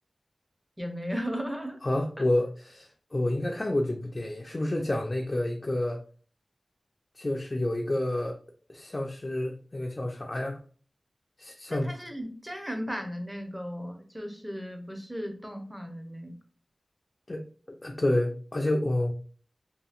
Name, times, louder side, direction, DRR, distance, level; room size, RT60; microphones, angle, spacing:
voice 1, 0.8-1.8 11.7-16.3, equal, 5° right, 4 dB, 0.7 m, -36 dB
voice 2, 1.8-6.0 7.2-8.4 8.7-10.6 11.4-12.0 17.3-17.4 17.7-19.1, left 1 dB, 40° left, 1 dB, 0.4 m, -29 dB
2.7 x 2.7 x 2.4 m, 0.41 s
wide cardioid pair, 55°, 0 cm